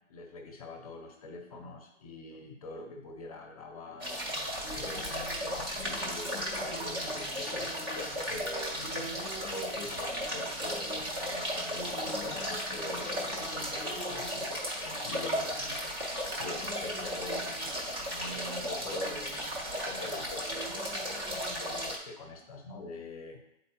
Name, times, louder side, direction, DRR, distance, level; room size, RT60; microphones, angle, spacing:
voice 1, 0.0-4.1 4.7-7.7 8.3-9.2 9.5-14.5 15.0-17.5 18.0-23.4, left 2 dB, 30° left, 2 dB, 0.7 m, -45 dB
sound 1, 4.0-22.0, equal, 20° right, 0.6 m, -35 dB
7.8 x 4.2 x 2.9 m, 0.81 s
hypercardioid pair, 160°, 38 cm